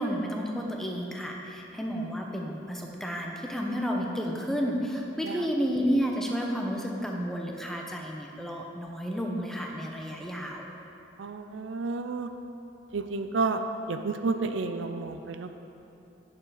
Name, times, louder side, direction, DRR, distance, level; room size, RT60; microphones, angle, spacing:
voice 1, 0.0-10.7, equal, ahead, 0 dB, 0.7 m, -31 dB
voice 2, 11.2-12.3 12.9-13.6 13.9-15.5, right 3 dB, 85° right, 7 dB, 0.5 m, -30 dB
8.8 x 6.6 x 4.9 m, 2.8 s
head